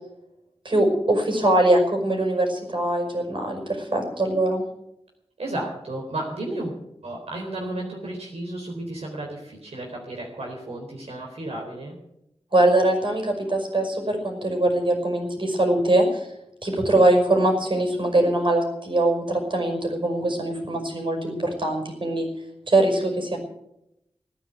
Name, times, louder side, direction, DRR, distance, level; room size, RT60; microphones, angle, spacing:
voice 1, 0.6-4.6 12.5-16.3 16.6-22.3 22.7-23.4, right 1 dB, 55° right, 3 dB, 5.6 m, -22 dB
voice 2, 5.4-6.7 7.0-12.0, right 1 dB, 85° right, -1 dB, 4.0 m, -33 dB
18.0 x 9.7 x 8.0 m, 0.82 s
wide cardioid pair, 70°, 10 cm